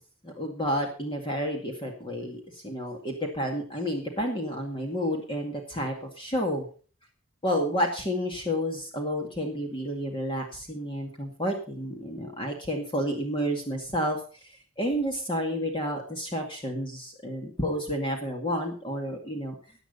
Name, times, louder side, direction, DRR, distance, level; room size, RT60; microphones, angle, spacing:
voice 1, 0.2-6.7 7.4-19.6, equal, 25° left, 1 dB, 2.1 m, -30 dB
15.0 x 9.2 x 5.5 m, 0.40 s
head